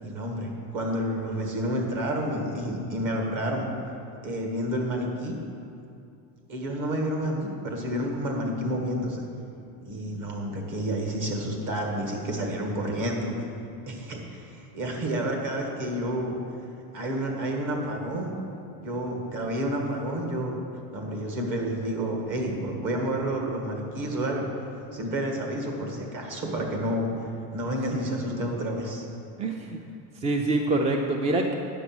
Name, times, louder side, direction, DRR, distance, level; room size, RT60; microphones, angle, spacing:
voice 1, 0.0-3.7 4.2-5.4 6.5-9.2 9.9-13.5 13.9-16.3 16.9-18.4 18.8-20.6 20.9-24.5 24.9-29.0, right 1 dB, 45° right, 1 dB, 2.0 m, -30 dB
voice 2, 29.4-29.8 30.2-31.5, right 2 dB, 15° right, 3 dB, 0.4 m, -25 dB
9.8 x 7.1 x 6.1 m, 2.5 s
supercardioid pair, 130°, 44 cm